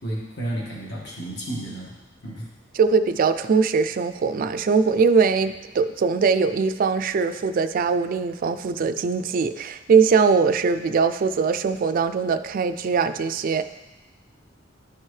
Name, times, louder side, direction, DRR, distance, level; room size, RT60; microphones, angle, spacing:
voice 1, 0.0-1.9 2.2-2.5, right 1 dB, 55° left, -4 dB, 1.7 m, -32 dB
voice 2, 2.8-13.6, right 5 dB, 45° right, 11 dB, 0.3 m, -21 dB
11.5 x 4.5 x 3.2 m, 1.0 s
head